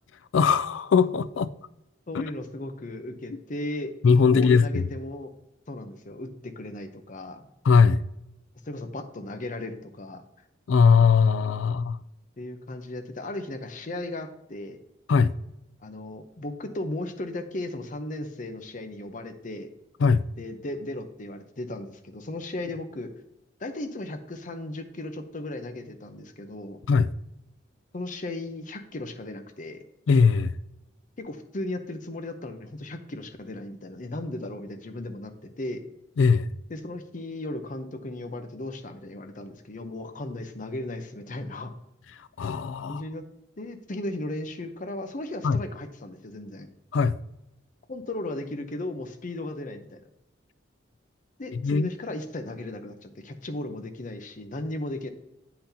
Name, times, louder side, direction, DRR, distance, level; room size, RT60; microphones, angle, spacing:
voice 1, 0.3-1.5 2.1-2.3 4.0-4.9 7.6-8.0 10.7-12.0 15.1-15.3 20.0-20.3 26.9-27.1 30.1-30.5 36.2-36.5 42.4-43.0 45.4-45.6 46.9-47.2 51.5-51.9, left 5 dB, 90° left, 0.4 m, -20 dB
voice 2, 2.1-3.9 4.3-5.3 5.7-7.5 8.6-10.2 12.4-14.8 15.8-19.7 20.4-23.1 23.6-26.8 27.9-29.8 31.2-35.8 36.7-41.7 42.8-43.2 43.6-46.7 47.9-50.0 51.4-55.1, left 1 dB, 45° left, 0.7 m, -36 dB
8.5 x 5.8 x 2.8 m
head